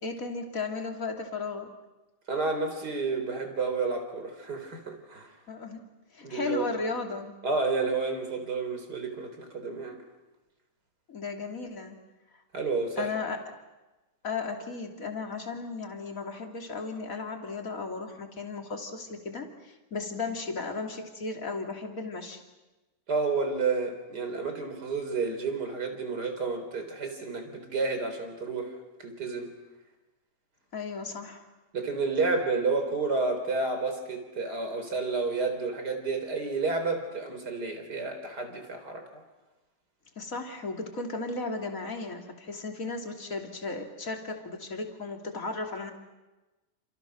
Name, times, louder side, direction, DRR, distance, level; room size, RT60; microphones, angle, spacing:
voice 1, 0.0-1.7 5.5-5.8 6.1-7.3 11.1-12.0 13.0-13.6 14.2-22.4 30.7-31.4 40.2-45.9, left 3 dB, 25° left, 2 dB, 2.8 m, -35 dB
voice 2, 2.3-5.3 6.2-6.7 7.4-10.0 12.5-13.2 23.1-28.7 29.0-29.5 31.7-39.1, right 4 dB, 25° right, 6 dB, 4.2 m, -30 dB
29.5 x 28.5 x 6.5 m, 1.1 s
omnidirectional pair, 4.1 m